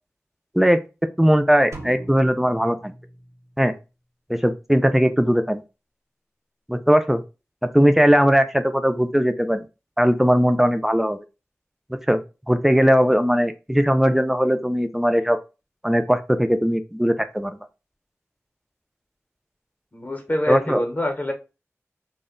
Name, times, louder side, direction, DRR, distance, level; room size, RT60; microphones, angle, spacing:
voice 1, 1.2-2.9 3.6-3.7 4.3-5.6 6.7-7.2 7.6-9.7 10.0-11.2 12.1-12.2 12.5-15.4 15.8-17.6 20.5-20.8, equal, 5° right, 9 dB, 0.3 m, -19 dB
sound 1, 1.7-3.7, right 1 dB, 85° right, 0.6 m, -39 dB
voice 2, 19.9-21.3, left 1 dB, 35° left, 3 dB, 0.8 m, -25 dB
2.1 x 2.0 x 3.6 m, 0.29 s
wide cardioid pair, 55°, 5 cm